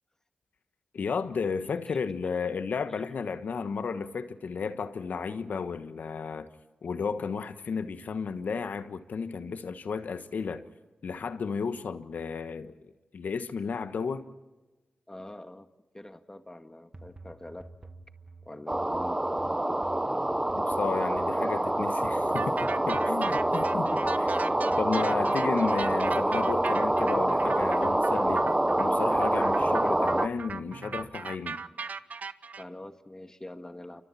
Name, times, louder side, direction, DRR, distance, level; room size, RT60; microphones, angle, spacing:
voice 1, 0.9-6.5 6.8-10.6 11.0-12.7 13.1-14.3 20.5-24.4 24.8-28.5 28.8-31.6, left 5 dB, 75° left, 1.3 m, -33 dB
voice 2, 1.9-2.3 2.9-3.1 15.1-15.7 15.9-17.7 18.4-19.2 32.6-34.0, left 1 dB, 20° left, 1.9 m, -45 dB
sound 1, 16.9-31.2, right 2 dB, 35° right, 1.9 m, -49 dB
sound 2, 18.7-30.3, right 1 dB, 15° right, 0.9 m, -26 dB
sound 3, 22.3-32.6, right 5 dB, 65° right, 0.8 m, -37 dB
29.0 x 24.5 x 4.3 m
cardioid pair, 45°, 3 cm